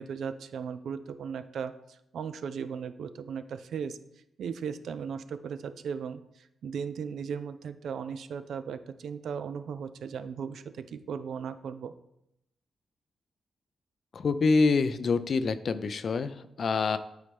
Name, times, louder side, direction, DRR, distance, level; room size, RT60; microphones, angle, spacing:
voice 1, 0.0-4.0 4.4-11.9, right 6 dB, 75° right, 12 dB, 0.3 m, -37 dB
voice 2, 14.1-17.0, left 4 dB, 60° left, 12 dB, 0.4 m, -26 dB
8.0 x 4.2 x 3.4 m, 0.83 s
hypercardioid pair, 40°, 0 cm